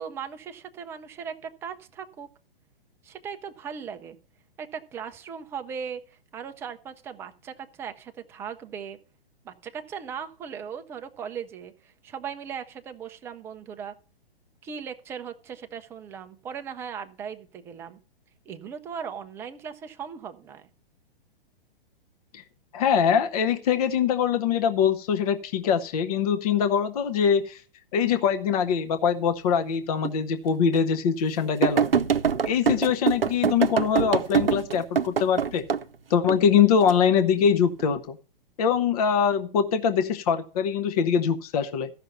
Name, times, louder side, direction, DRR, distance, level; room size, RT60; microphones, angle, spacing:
voice 1, 0.0-2.3 3.0-4.2 4.6-9.0 9.4-13.9 14.6-18.0 18.5-20.7, right 7 dB, 10° right, 7 dB, 0.4 m, -38 dB
voice 2, 22.7-27.6 27.9-31.9 32.4-35.7 36.1-38.2 38.6-41.9, left 7 dB, 40° left, 9 dB, 0.8 m, -23 dB
sound 1, 30.0-30.1 30.7-30.8 31.6-35.8 36.3-36.9 37.6-37.9, right 7 dB, 80° right, 0.6 m, -24 dB
14.5 x 5.8 x 5.4 m, 0.39 s
figure-of-eight pair, 120°, 29 cm